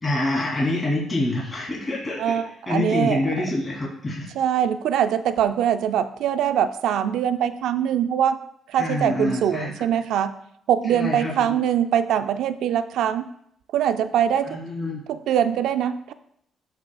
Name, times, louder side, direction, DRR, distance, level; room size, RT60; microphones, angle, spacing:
voice 1, 0.0-2.4 2.7-4.3 8.8-9.8 10.8-11.6 14.4-15.0, left 2 dB, 25° left, -4 dB, 2.9 m, -26 dB
voice 2, 2.2-3.2 4.4-8.4 8.7-10.3 10.7-13.2 13.7-14.6 15.1-16.1, right 9 dB, 80° right, 11 dB, 0.4 m, -23 dB
12.5 x 5.9 x 2.4 m, 0.71 s
cardioid pair, 90°, 0 cm